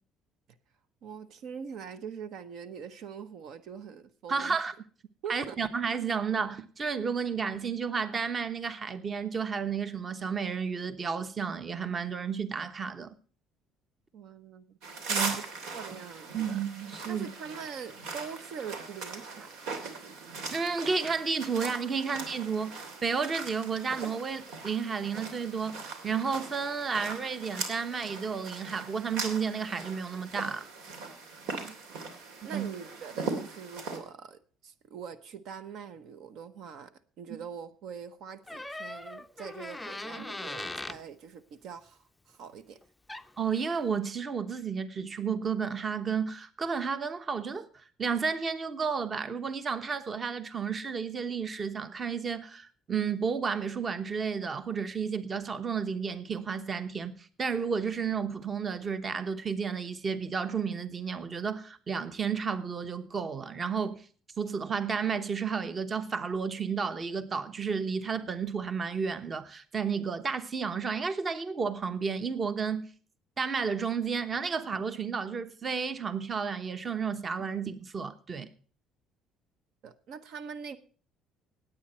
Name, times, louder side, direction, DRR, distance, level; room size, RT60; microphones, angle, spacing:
voice 1, 1.0-4.6 5.2-5.6 14.1-14.8 15.1-15.4 15.7-16.6 17.1-19.8 31.5-32.0 32.4-36.9 37.2-42.8 79.8-80.8, right 7 dB, 60° right, 1.0 m, -43 dB
voice 2, 4.3-4.7 5.3-13.1 15.1-15.4 16.3-17.3 20.5-30.7 32.5-32.7 40.2-40.3 43.4-47.7 48.0-64.0 64.4-72.9 73.4-78.5, right 6 dB, 30° right, 1.0 m, -32 dB
sound 1, 14.8-34.0, right 4 dB, 85° right, 3.0 m, -39 dB
Door, 38.5-41.0 42.8-42.9 43.1-43.5, left 2 dB, 5° left, 0.5 m, -39 dB
17.5 x 8.9 x 4.3 m
cardioid pair, 130°, 0 cm